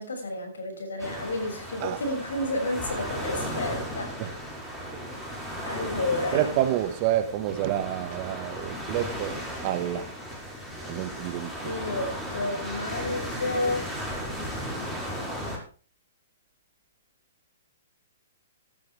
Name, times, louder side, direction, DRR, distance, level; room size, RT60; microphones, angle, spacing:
voice 1, 0.0-4.2 5.6-6.5 11.6-13.8, left 2 dB, 85° left, 6.7 m, -31 dB
sound 1, 1.0-15.6, equal, 5° left, 5.5 m, -35 dB
voice 2, 6.3-10.1 10.8-11.7, right 12 dB, 40° right, 1.7 m, -29 dB
15.0 x 13.0 x 3.6 m
hypercardioid pair, 135°, 0 cm